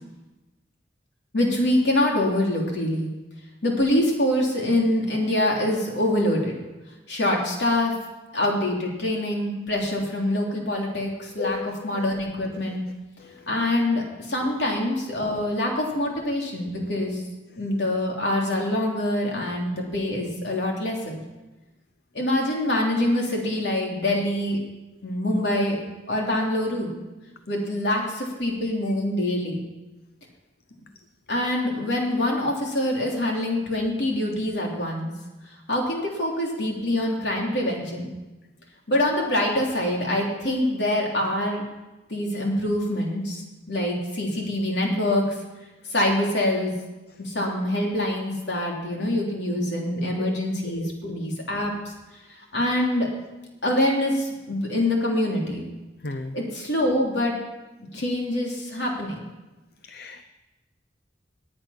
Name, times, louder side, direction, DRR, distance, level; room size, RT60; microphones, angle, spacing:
voice 1, 1.3-3.1 3.6-6.5 7.1-7.9 8.3-12.8 13.5-17.2 17.6-21.2 22.1-24.6 25.0-25.8 26.1-26.9 27.5-29.7 31.3-35.1 35.7-38.1 38.9-41.7 42.1-45.3 45.9-46.7 47.2-51.7 52.5-53.1 53.6-55.6 56.3-57.4 57.9-59.2, left 1 dB, 75° left, -1 dB, 3.4 m, -25 dB
voice 2, 11.4-12.1 50.0-50.3 50.7-50.9 56.0-56.3 59.9-60.2, left 4 dB, 60° left, 8 dB, 0.6 m, -34 dB
19.5 x 8.8 x 5.9 m, 1.1 s
head